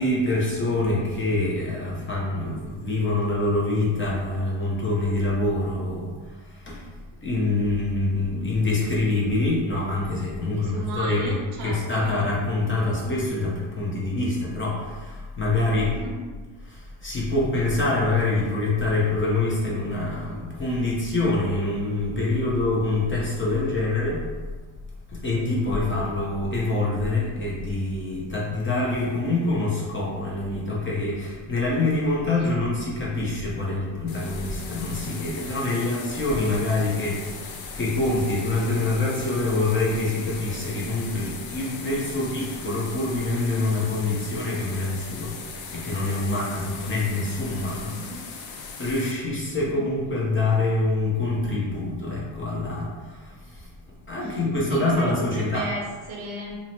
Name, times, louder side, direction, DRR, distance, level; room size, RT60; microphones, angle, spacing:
voice 1, 0.0-6.9 7.2-16.0 16.6-24.3 25.1-48.1 48.8-53.7 54.1-55.7, left 2 dB, 25° left, -5 dB, 0.6 m, -25 dB
voice 2, 10.5-12.2 13.0-13.1 15.8-16.2 32.4-32.6 46.6-47.0 47.8-48.3 49.6-49.9 54.2-54.3 54.7-56.6, right 1 dB, 75° right, -1 dB, 0.8 m, -35 dB
sound 1, 34.1-49.1, left 5 dB, 70° left, 0.6 m, -39 dB
2.6 x 2.0 x 3.0 m, 1.4 s
cardioid pair, 110°, 49 cm